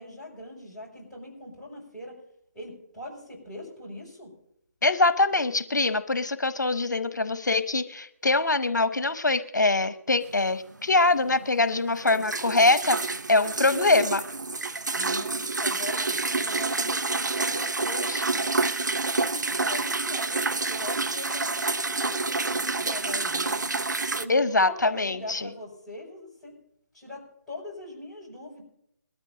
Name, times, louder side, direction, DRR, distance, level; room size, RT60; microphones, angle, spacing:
voice 1, 0.0-2.2 2.5-4.3 12.0-12.3 15.0-18.7 19.2-23.6 24.2-26.6 26.9-28.6, left 1 dB, ahead, -9 dB, 6.0 m, -41 dB
voice 2, 4.8-14.2 18.1-18.2 24.3-25.5, left 3 dB, 85° left, 13 dB, 0.8 m, -23 dB
sound 1, 10.3-10.4 10.9-11.0 11.3-11.6 11.9-24.3, right 3 dB, 85° right, 0.8 m, -28 dB
21.5 x 13.5 x 2.7 m, 0.73 s
figure-of-eight pair, 150°, 10 cm